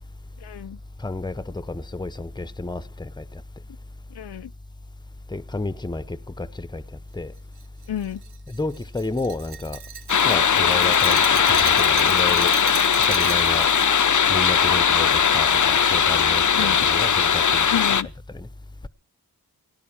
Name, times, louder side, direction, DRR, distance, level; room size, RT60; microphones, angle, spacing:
voice 1, 0.4-0.8 4.1-4.5 7.9-8.2 16.5-16.9 17.7-18.1, left 10 dB, 90° left, 0.7 m, -30 dB
voice 2, 1.0-3.4 5.3-6.8 7.1-7.3 8.5-9.8 10.2-12.5 13.1-13.7 14.3-17.7 18.3-18.5, left 2 dB, 10° left, 0.9 m, -31 dB
Glass, 7.6-13.9, right 8 dB, 90° right, 0.8 m, -37 dB
sound 1, 10.1-18.0, left 7 dB, 50° left, 0.7 m, -19 dB
17.5 x 10.5 x 7.2 m
wide cardioid pair, 70°, 38 cm